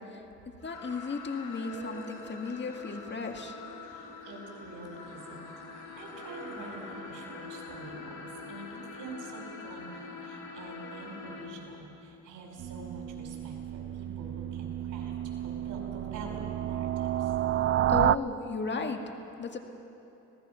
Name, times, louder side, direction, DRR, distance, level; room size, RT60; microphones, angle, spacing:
sound 1, 0.6-11.5, left 3 dB, 85° left, 4.9 m, -44 dB
voice 1, 0.6-3.6 17.9-19.0 19.4-19.6, left 4 dB, 35° left, 4 dB, 2.0 m, -35 dB
voice 2, 3.8-15.1 15.4-17.3, right 2 dB, 85° right, 1 dB, 4.9 m, -46 dB
sound 2, 12.6-18.2, right 11 dB, 45° right, 0.4 m, -30 dB
26.0 x 18.5 x 5.7 m, 2.9 s
cardioid pair, 90°, 30 cm